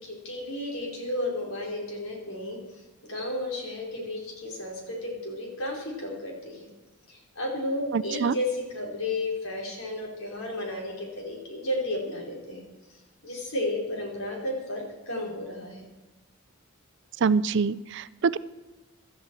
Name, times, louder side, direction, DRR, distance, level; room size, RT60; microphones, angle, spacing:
voice 1, 0.0-2.6 3.1-6.7 7.1-12.6 13.2-15.8, left 1 dB, 75° left, -1 dB, 4.5 m, -33 dB
voice 2, 7.9-8.3 17.2-18.4, right 5 dB, 55° right, 17 dB, 0.4 m, -25 dB
16.0 x 13.0 x 4.7 m, 1.1 s
head